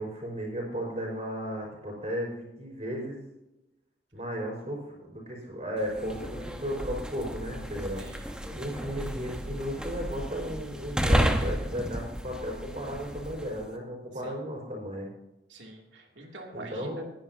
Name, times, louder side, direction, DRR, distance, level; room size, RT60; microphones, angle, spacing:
voice 1, 0.0-3.3 4.1-15.1 16.5-17.0, equal, 35° right, -1 dB, 4.8 m, -35 dB
sound 1, 5.8-13.6, equal, 5° right, 1.0 m, -32 dB
voice 2, 14.1-14.4 15.5-17.0, right 2 dB, 85° right, 1 dB, 2.7 m, -46 dB
20.0 x 10.5 x 2.8 m, 0.94 s
head